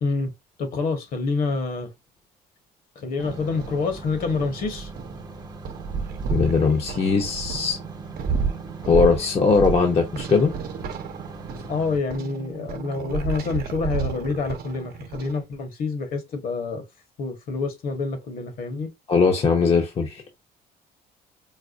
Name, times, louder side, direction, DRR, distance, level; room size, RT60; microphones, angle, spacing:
voice 1, 0.0-0.3 0.6-1.9 2.9-4.9 11.7-16.8 17.2-18.9, left 4 dB, 60° left, 1.3 m, -27 dB
sound 1, 3.2-12.0, right 2 dB, 25° right, 0.7 m, -41 dB
sound 2, 3.2-15.4, right 5 dB, 65° right, 0.8 m, -32 dB
voice 2, 6.3-7.8 8.9-10.5 19.1-20.4, left 5 dB, 35° left, 0.8 m, -20 dB
4.7 x 2.1 x 2.5 m
cardioid pair, 110°, 17 cm